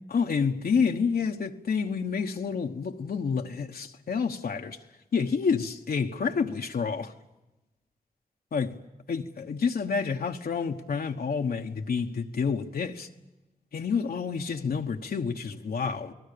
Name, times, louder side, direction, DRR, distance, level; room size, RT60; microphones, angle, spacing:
voice 1, 0.1-4.8 5.1-7.1 8.5-8.8 9.1-13.1 13.7-16.1, left 5 dB, 85° left, 1.2 m, -29 dB
29.5 x 20.0 x 6.8 m
wide cardioid pair, 70°, 15 cm